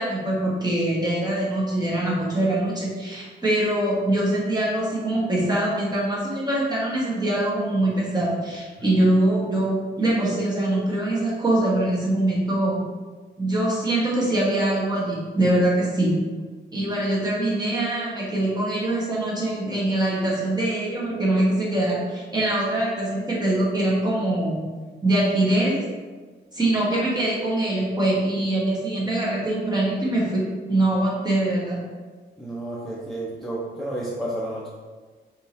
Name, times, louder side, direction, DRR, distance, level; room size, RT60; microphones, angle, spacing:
voice 1, 0.0-12.8 13.4-16.1 16.7-24.6 25.0-25.8 26.5-31.8, right 1 dB, 20° right, -6 dB, 1.1 m, -23 dB
voice 2, 32.4-34.7, right 1 dB, ahead, -6 dB, 0.5 m, -31 dB
3.6 x 2.7 x 4.0 m, 1.4 s
wide cardioid pair, 145°, 20 cm